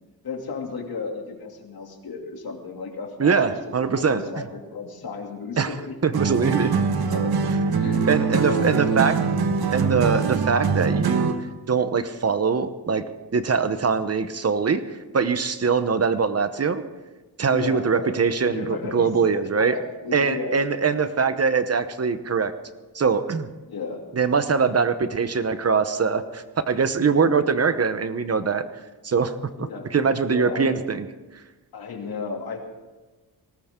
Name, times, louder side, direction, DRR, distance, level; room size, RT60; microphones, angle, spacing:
voice 1, 0.2-6.0 6.5-6.6 7.1-7.4 7.8-9.2 17.5-18.1 18.5-19.1 19.4-20.6 23.7-24.1 29.6-29.9 30.2-30.7 31.7-32.7, left 4 dB, 70° left, 2 dB, 2.7 m, -34 dB
voice 2, 3.2-4.4 5.6-5.7 6.0-6.7 8.1-9.1 9.7-11.3 11.7-13.0 13.3-16.8 17.4-19.8 20.1-22.5 22.9-23.5 24.1-28.6 29.0-29.3 29.6-31.1, right 5 dB, 40° right, 11 dB, 0.9 m, -22 dB
sound 1, 6.1-11.5, right 5 dB, 70° right, 1.3 m, -23 dB
20.0 x 18.0 x 3.7 m, 1.2 s
wide cardioid pair, 125°, 38 cm